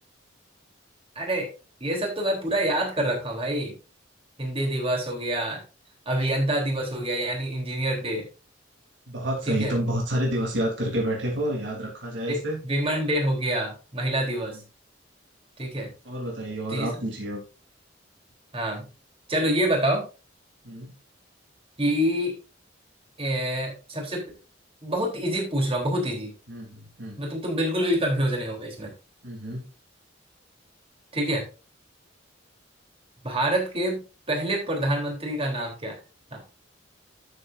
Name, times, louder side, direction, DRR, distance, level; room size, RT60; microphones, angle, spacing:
voice 1, 1.2-1.5 1.8-3.7 4.4-5.6 6.1-8.2 9.5-9.7 12.3-14.6 15.6-15.9 16.7-16.9 18.5-18.9 19.3-20.1 21.8-22.4 23.2-24.2 24.8-26.3 27.2-28.9 31.1-31.4 33.2-34.0 34.3-36.0 36.3-36.4, right 1 dB, 30° right, 1 dB, 3.7 m, -26 dB
voice 2, 9.1-12.6 14.3-14.5 16.0-17.4 20.6-20.9 26.5-27.2 29.2-29.6, right 1 dB, 70° right, -1 dB, 3.4 m, -29 dB
12.5 x 7.4 x 2.7 m, 0.31 s
head